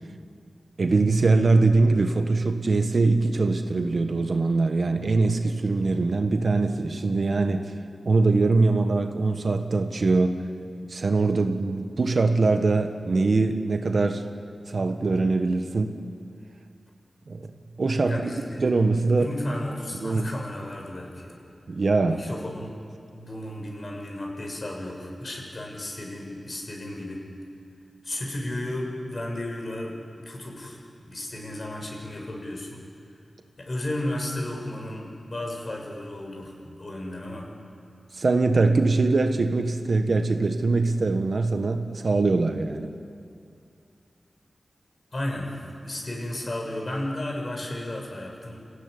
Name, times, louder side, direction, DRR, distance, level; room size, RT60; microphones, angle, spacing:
voice 1, 0.8-7.7 8.0-10.4 10.9-14.2 14.7-15.9 17.3-17.5 17.8-18.3 18.6-19.3 20.0-20.3 21.7-22.2 38.1-42.9, right 3 dB, 65° right, 6 dB, 1.6 m, -22 dB
voice 2, 18.0-18.6 19.2-21.4 22.1-22.7 23.1-27.3 28.0-30.0 30.2-32.8 33.6-37.5 45.1-48.6, left 1 dB, 45° left, 0 dB, 6.4 m, -34 dB
27.5 x 16.5 x 10.0 m, 2.4 s
wide cardioid pair, 70°, 0 cm